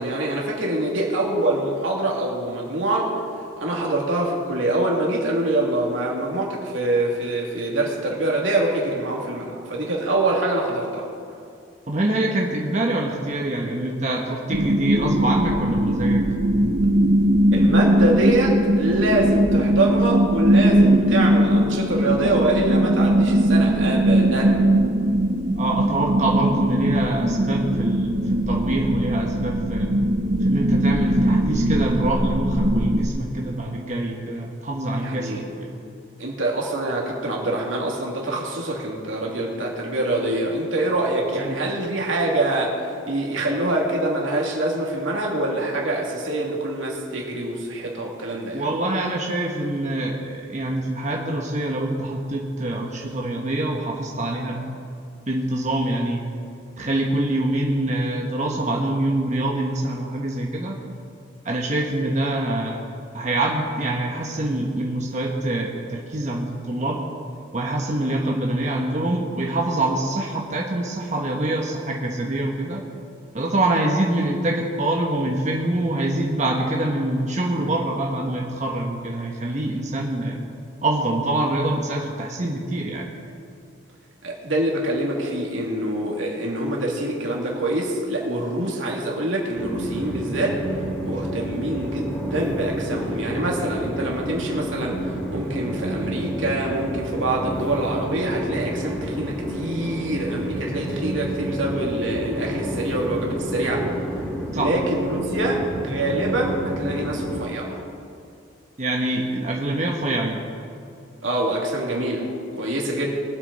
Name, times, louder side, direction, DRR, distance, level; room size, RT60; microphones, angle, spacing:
voice 1, 0.0-3.1 3.6-11.1 17.5-24.6 34.9-35.4 36.2-48.6 84.2-90.6 91.0-103.8 104.5-107.8 111.2-112.2 112.5-113.2, right 1 dB, 85° right, -2 dB, 2.8 m, -25 dB
voice 2, 11.9-16.2 25.6-29.9 30.4-35.7 41.4-41.6 48.5-54.6 55.3-56.2 56.8-60.8 61.4-62.8 63.1-67.0 67.5-72.8 73.3-80.4 80.8-83.1 104.5-104.7 108.8-110.4, right 1 dB, 40° right, -1 dB, 1.2 m, -25 dB
sound 1, 14.5-33.1, right 1 dB, 60° right, 1.1 m, -20 dB
Train, 89.5-107.4, right 1 dB, 10° left, 2.8 m, -29 dB
22.5 x 8.2 x 4.2 m, 2.4 s
head